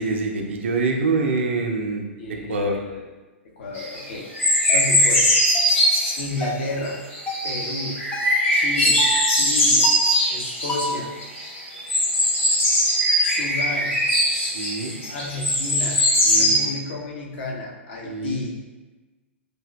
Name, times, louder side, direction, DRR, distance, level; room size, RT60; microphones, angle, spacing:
voice 1, 0.0-2.0 2.3-2.8 14.5-14.9 16.2-16.6 18.1-18.4, right 3 dB, 65° right, 2 dB, 0.4 m, -25 dB
voice 2, 2.2-3.0 3.6-4.3 4.7-5.2 5.8-5.9 6.2-7.0 7.4-8.0 8.5-9.1 9.4-9.9 10.3-11.1 13.2-14.1 15.1-16.0 16.4-18.5, left 2 dB, 55° left, -2 dB, 0.6 m, -31 dB
sound 1, 3.7-4.0 4.3-6.3 6.8-6.9 7.1-10.9 11.2-16.7, equal, 85° left, 1.2 m, -20 dB
sound 2, 4.7-4.9 5.5-5.8 6.4-6.7 7.3-7.5 8.1-8.4 9.0-9.3 9.8-10.2 10.7-11.0, right 1 dB, 15° left, 0.4 m, -30 dB
3.2 x 2.4 x 2.2 m, 1.2 s
figure-of-eight pair, 105°, 7 cm